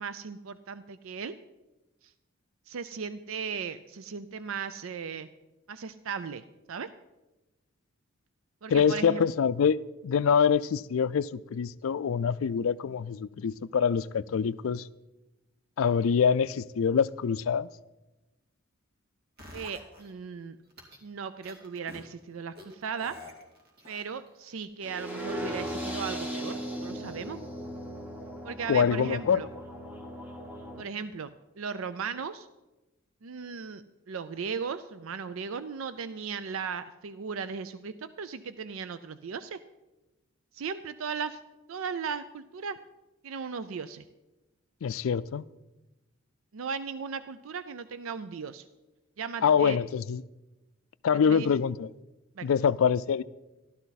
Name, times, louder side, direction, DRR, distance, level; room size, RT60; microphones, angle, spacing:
voice 1, 0.0-1.3 2.0-2.1 2.7-5.3 5.7-6.9 8.6-9.3 19.5-20.6 21.0-23.2 23.9-27.4 28.4-29.5 30.8-31.3 31.6-32.5 33.2-39.6 40.5-41.4 41.7-42.8 43.2-44.0 46.5-48.7 49.2-49.8 51.3-51.5 52.4-52.5, right 6 dB, 75° right, 0.5 m, -37 dB
voice 2, 8.7-9.8 10.0-14.9 15.8-17.7 28.7-29.4 44.8-45.4 49.4-50.2 51.0-51.9 52.4-53.2, left 7 dB, 75° left, 0.4 m, -25 dB
sound 1, 19.4-20.1 20.7-21.0 21.4-22.0 22.6-24.3 24.6-24.7, left 1 dB, 50° right, 2.2 m, -47 dB
sound 2, 24.8-30.8, equal, 10° right, 1.1 m, -37 dB
14.5 x 12.0 x 4.1 m
head